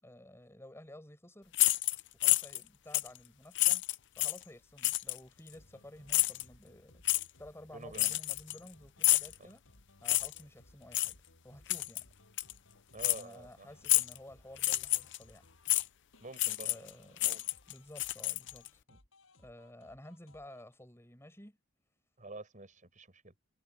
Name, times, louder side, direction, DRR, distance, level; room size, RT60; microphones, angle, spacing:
voice 1, 0.0-1.5 2.1-3.8 4.2-7.0 7.4-9.6 10.0-11.2 11.4-12.0 13.1-15.5 16.6-17.3 17.7-18.8 19.4-21.6, left 1 dB, 15° left, 7.0 m, -53 dB
sound 1, 1.5-2.6 2.9-3.2 3.5-4.4 4.8-5.2 6.1-6.4 7.0-7.2 7.9-8.7 9.0-9.3 10.0-10.4 10.9-11.1 11.7-12.0 12.4-12.5 13.0-13.2 13.8-14.2 14.6-15.2 15.7-15.8 16.4-16.9 17.2-18.7, left 17 dB, 65° left, 0.6 m, -29 dB
sound 2, 5.5-20.8, left 1 dB, 80° left, 7.1 m, -63 dB
voice 2, 7.7-8.2 9.4-9.5 12.9-13.7 16.2-16.8 17.2-17.4 18.9-19.0 22.2-23.3, right 2 dB, 40° right, 6.3 m, -48 dB
head